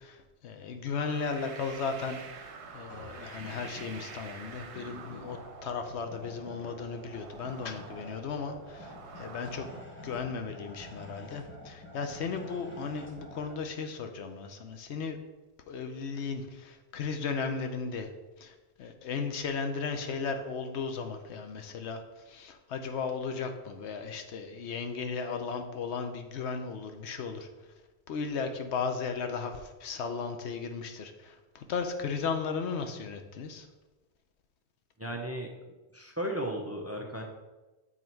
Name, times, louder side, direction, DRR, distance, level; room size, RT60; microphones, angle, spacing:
voice 1, 0.0-2.5 2.7-9.7 10.0-15.2 15.7-18.1 18.4-27.5 28.1-33.7, left 5 dB, 85° left, 7 dB, 1.0 m, -36 dB
sound 1, 1.0-9.8, right 5 dB, 90° right, 1.0 m, -47 dB
sound 2, 2.8-13.6, left 1 dB, 10° left, 1.1 m, -49 dB
voice 2, 35.0-35.5 35.9-37.2, right 1 dB, 15° right, 1 dB, 0.6 m, -35 dB
7.4 x 4.0 x 4.5 m, 1.2 s
omnidirectional pair, 1.1 m